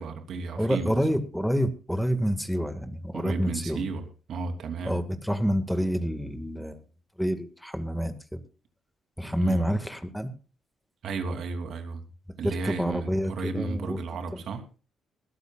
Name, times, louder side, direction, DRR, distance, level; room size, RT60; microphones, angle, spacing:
voice 1, 0.0-1.0 3.1-5.0 9.4-9.7 11.0-12.0 12.4-14.6, right 3 dB, 70° right, 5 dB, 3.1 m, -33 dB
voice 2, 0.6-3.8 4.8-6.8 7.2-8.4 9.2-10.3 12.4-14.0 14.3-14.4, equal, ahead, 8 dB, 1.9 m, -28 dB
21.5 x 13.5 x 2.4 m, 0.35 s
cardioid pair, 90°, 0 cm